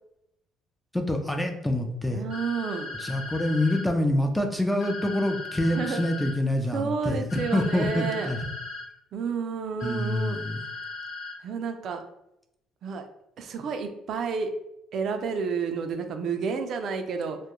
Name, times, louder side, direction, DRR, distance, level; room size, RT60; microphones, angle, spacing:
voice 1, 0.9-2.2 3.0-8.4 9.8-10.6, left 1 dB, 5° left, 4 dB, 0.4 m, -26 dB
voice 2, 2.1-2.9 5.6-6.1 6.7-8.3 9.1-10.4 11.4-12.0 12.8-13.0 13.4-14.5 14.9-17.4, right 5 dB, 60° right, 6 dB, 0.3 m, -30 dB
sound 1, 2.3-3.8 4.8-6.3 7.3-8.8 9.8-11.3, left 3 dB, 65° left, 1.1 m, -37 dB
2.2 x 2.1 x 2.9 m, 0.82 s
cardioid pair, 90°, 0 cm